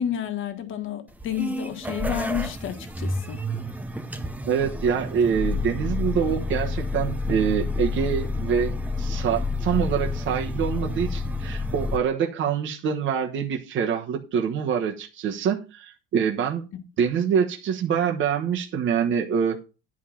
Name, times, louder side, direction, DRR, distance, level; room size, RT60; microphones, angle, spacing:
voice 1, 0.0-3.4, left 9 dB, 40° left, 1.5 m, -30 dB
sound 1, 1.1-12.0, left 2 dB, 5° right, 0.7 m, -29 dB
voice 2, 4.5-16.7 17.0-19.6, right 7 dB, 40° right, 1.2 m, -25 dB
11.0 x 5.1 x 5.7 m
cardioid pair, 165°, 30 cm